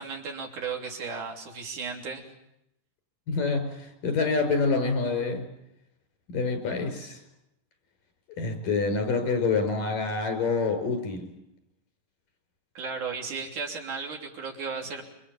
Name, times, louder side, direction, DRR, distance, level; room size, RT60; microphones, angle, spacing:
voice 1, 0.0-2.2 12.7-15.0, right 5 dB, 65° right, 1 dB, 4.6 m, -35 dB
voice 2, 3.3-5.5 6.3-7.2 8.4-11.3, left 4 dB, 85° left, 6 dB, 6.7 m, -27 dB
28.5 x 24.5 x 7.3 m, 0.83 s
omnidirectional pair, 3.8 m